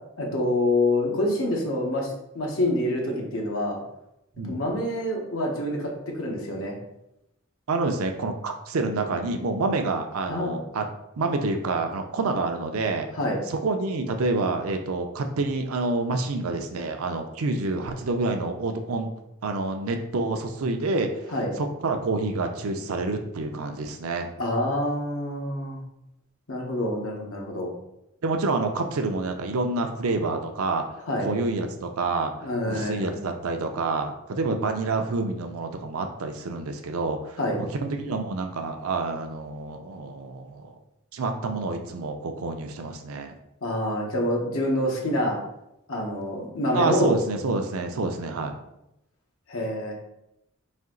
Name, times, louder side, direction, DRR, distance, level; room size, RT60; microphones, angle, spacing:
voice 1, 0.2-3.8 4.4-6.7 10.3-10.5 13.1-13.4 21.3-21.5 24.4-25.8 26.5-27.7 31.1-31.3 32.4-33.2 37.4-37.6 43.6-45.4 45.9-47.1 49.5-49.9, left 1 dB, 75° left, 0 dB, 1.0 m, -26 dB
voice 2, 7.7-10.9 11.2-13.1 13.5-19.1 19.4-21.1 21.6-24.3 28.2-30.8 31.2-32.3 32.7-40.7 41.1-43.4 46.7-48.5, right 3 dB, 90° right, 5 dB, 0.5 m, -28 dB
4.2 x 2.8 x 3.8 m, 0.85 s
head